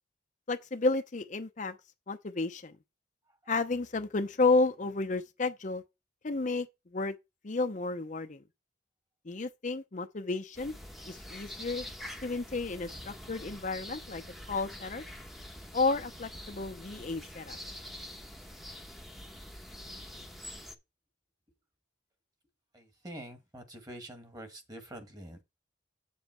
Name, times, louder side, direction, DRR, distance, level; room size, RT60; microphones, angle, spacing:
voice 1, 0.5-1.8 2.1-2.8 3.5-5.8 6.2-6.7 6.9-7.1 7.4-8.4 9.3-10.7 11.1-11.9 12.2-14.2 14.5-15.0 15.7-17.6, left 3 dB, 45° left, 0.7 m, -31 dB
sound 1, 10.5-20.7, left 1 dB, ahead, 1.0 m, -45 dB
voice 2, 22.7-25.4, right 1 dB, 20° right, 1.7 m, -46 dB
8.4 x 7.2 x 4.4 m
head